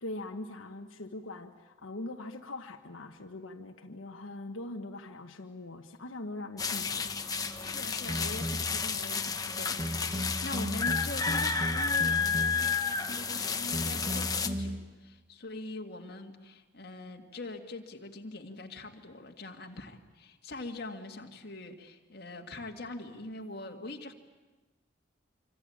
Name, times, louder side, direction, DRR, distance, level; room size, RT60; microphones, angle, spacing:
voice 1, 0.0-7.1, left 2 dB, 85° left, 4 dB, 1.3 m, -42 dB
sound 1, 6.6-14.5, left 5 dB, 20° left, 1.1 m, -31 dB
voice 2, 7.6-9.8 10.0-24.1, left 2 dB, 50° left, 3 dB, 2.2 m, -43 dB
sound 2, 8.1-8.9 9.8-12.8 13.7-14.8, equal, 25° right, 2.0 m, -36 dB
26.0 x 25.5 x 8.8 m, 1.2 s
head